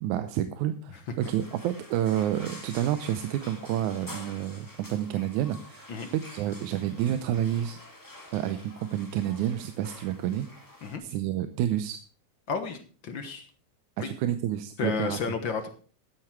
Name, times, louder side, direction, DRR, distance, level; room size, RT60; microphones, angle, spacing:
voice 1, 0.0-7.8 8.3-12.0 14.0-15.2, right 11 dB, 90° right, 11 dB, 2.2 m, -29 dB
sound 1, 1.2-11.0, left 1 dB, 10° left, 1.7 m, -48 dB
voice 2, 12.5-12.8 13.0-13.5 14.0-14.1 14.8-15.7, left 5 dB, 55° left, 7 dB, 1.5 m, -32 dB
13.0 x 9.9 x 4.6 m, 0.40 s
omnidirectional pair, 3.4 m